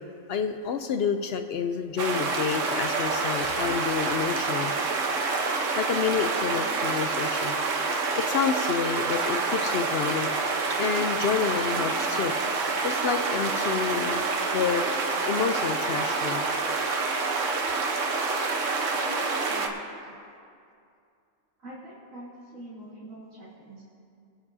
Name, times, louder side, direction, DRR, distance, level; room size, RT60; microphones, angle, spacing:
voice 1, 0.3-4.7 5.8-7.6 7.9-10.3 10.8-12.3 12.8-14.2 14.5-14.8 15.3-16.5, left 7 dB, 65° left, 7 dB, 0.7 m, -29 dB
sound 1, 2.0-19.7, right 4 dB, 70° right, 1.3 m, -27 dB
voice 2, 19.0-19.7 21.6-23.8, right 1 dB, 90° right, -12 dB, 3.1 m, -44 dB
25.5 x 8.6 x 2.7 m, 2.4 s
omnidirectional pair, 1.3 m